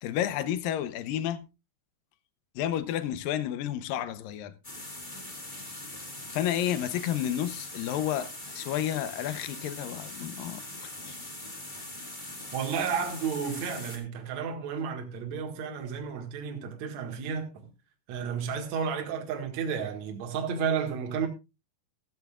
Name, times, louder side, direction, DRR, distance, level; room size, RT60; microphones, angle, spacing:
voice 1, 0.0-1.5 2.6-4.5 6.3-11.2, left 11 dB, 75° left, 2.2 m, -31 dB
sound 1, 4.6-14.0, left 1 dB, 20° left, 1.2 m, -42 dB
voice 2, 12.5-17.7 18.1-21.3, right 6 dB, 55° right, 2.5 m, -32 dB
14.5 x 14.0 x 2.4 m
omnidirectional pair, 4.8 m